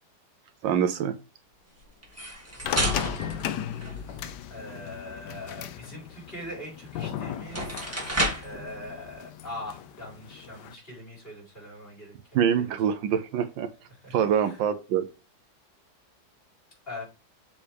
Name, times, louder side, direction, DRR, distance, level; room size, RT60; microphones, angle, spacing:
voice 1, 0.6-1.2 12.3-13.7 14.1-15.1, right 8 dB, 75° right, 9 dB, 1.3 m, -25 dB
sound 1, 2.0-4.4 6.9-7.0 7.4-8.6, equal, 10° right, 1.8 m, -31 dB
sound 2, 2.6-10.7, left 10 dB, 70° left, 1.1 m, -37 dB
voice 2, 4.5-7.9 8.4-12.9 14.0-14.6 16.9-17.0, left 1 dB, 25° left, -2 dB, 4.4 m, -42 dB
7.0 x 5.9 x 3.4 m, 0.30 s
omnidirectional pair, 2.1 m